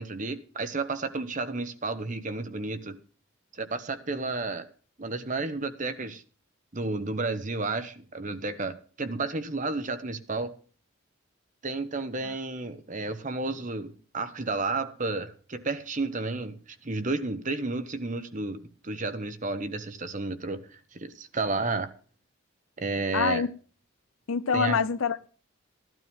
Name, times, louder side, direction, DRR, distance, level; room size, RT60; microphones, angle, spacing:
voice 1, 0.0-3.0 3.5-4.7 5.0-6.2 6.7-10.5 11.6-21.9 22.8-23.5 24.5-24.8, right 3 dB, 35° right, 1.0 m, -32 dB
voice 2, 23.1-23.5 24.3-25.3, left 6 dB, 80° left, 0.6 m, -25 dB
14.0 x 12.5 x 3.5 m
head